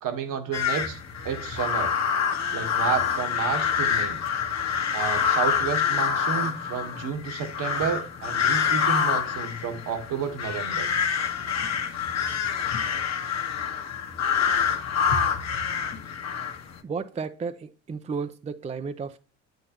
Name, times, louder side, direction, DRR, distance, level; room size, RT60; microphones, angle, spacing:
voice 1, 0.0-1.0 1.2-1.9 2.5-4.2 4.9-10.9, right 7 dB, 60° right, 1.4 m, -31 dB
sound 1, 0.5-16.8, left 7 dB, 45° left, 1.4 m, -26 dB
voice 2, 16.8-19.2, right 5 dB, 20° right, 0.5 m, -33 dB
8.5 x 7.9 x 2.9 m
hypercardioid pair, 70°, 36 cm